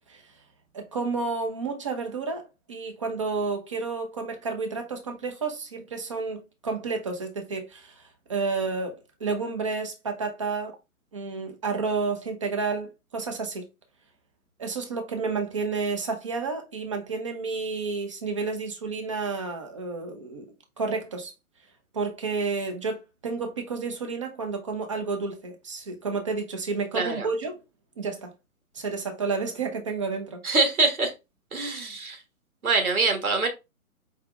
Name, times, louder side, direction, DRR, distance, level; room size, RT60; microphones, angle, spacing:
voice 1, 0.7-10.8 11.1-13.7 14.6-20.5 20.8-21.3 21.9-27.6 28.0-28.3 28.7-30.4, right 4 dB, 20° right, 0.5 m, -31 dB
voice 2, 26.9-27.3 30.4-31.1 31.5-32.2 32.6-33.5, right 3 dB, 75° right, 1.4 m, -24 dB
4.8 x 3.2 x 2.4 m
figure-of-eight pair, 125°, 44 cm